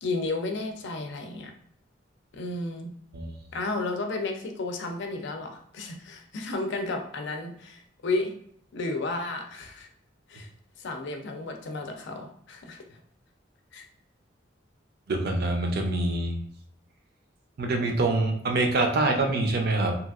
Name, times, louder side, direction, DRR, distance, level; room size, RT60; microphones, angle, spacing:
voice 1, 0.0-1.5 2.3-2.9 3.5-8.3 8.7-9.9 10.3-10.5 10.8-12.8 13.7-13.9, left 2 dB, 65° left, 4 dB, 0.5 m, -32 dB
voice 2, 15.1-16.4 17.6-20.0, right 2 dB, 55° right, 3 dB, 0.5 m, -25 dB
2.9 x 2.4 x 2.4 m, 0.66 s
head